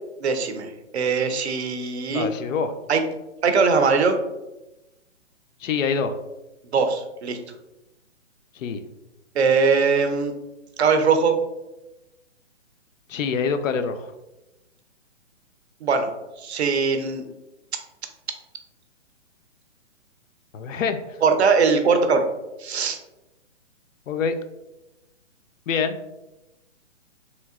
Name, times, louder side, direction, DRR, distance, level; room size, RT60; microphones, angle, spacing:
voice 1, 0.2-2.3 2.9-3.0 3.4-4.2 6.7-7.4 9.3-10.3 10.8-11.4 15.8-16.1 16.4-17.2 21.2-22.2 22.6-23.0, right 5 dB, 60° right, 7 dB, 0.5 m, -21 dB
voice 2, 2.1-2.7 5.6-6.1 8.6-8.8 13.1-14.1 20.5-21.0 24.1-24.3 25.7-26.0, left 6 dB, 85° left, 8 dB, 0.5 m, -25 dB
3.1 x 2.7 x 2.4 m, 0.97 s
hypercardioid pair, 170°, 38 cm